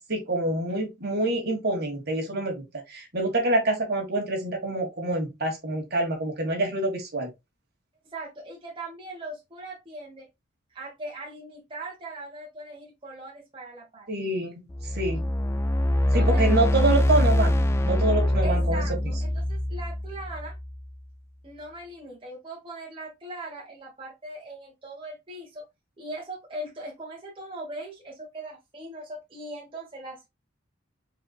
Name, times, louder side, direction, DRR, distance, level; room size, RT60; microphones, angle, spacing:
voice 1, 0.0-7.3 14.1-14.7 14.9-15.3 16.1-18.8, right 2 dB, 50° right, 1.8 m, -26 dB
voice 2, 8.1-10.3 10.7-14.1 16.1-16.4 18.4-20.6 21.4-25.6 26.0-30.3, right 2 dB, 25° right, 1.3 m, -40 dB
sound 1, 14.7-20.9, left 1 dB, 15° left, 0.3 m, -24 dB
4.8 x 4.1 x 2.4 m
head